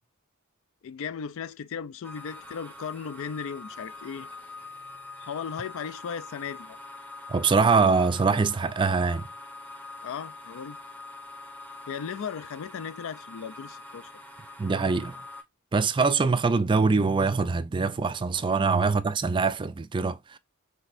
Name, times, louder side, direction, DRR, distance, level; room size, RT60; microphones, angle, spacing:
voice 1, 0.8-4.3 5.2-6.8 10.0-10.8 11.9-14.1, left 7 dB, 65° left, 0.3 m, -36 dB
sound 1, 2.0-15.4, left 2 dB, 5° left, 0.7 m, -44 dB
voice 2, 7.3-9.3 14.6-15.2 15.7-20.4, right 4 dB, 20° right, 0.3 m, -23 dB
6.0 x 3.4 x 2.5 m
head